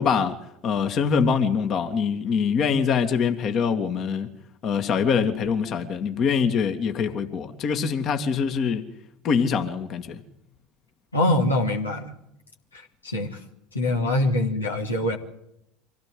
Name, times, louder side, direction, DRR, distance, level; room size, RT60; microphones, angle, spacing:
voice 1, 0.0-4.3 4.6-8.9 9.2-10.2, left 6 dB, 45° left, 2.2 m, -24 dB
voice 2, 11.1-12.1 12.7-13.4 13.7-15.2, left 1 dB, 90° left, 3.1 m, -24 dB
25.0 x 17.0 x 7.9 m
figure-of-eight pair, 75°, 0 cm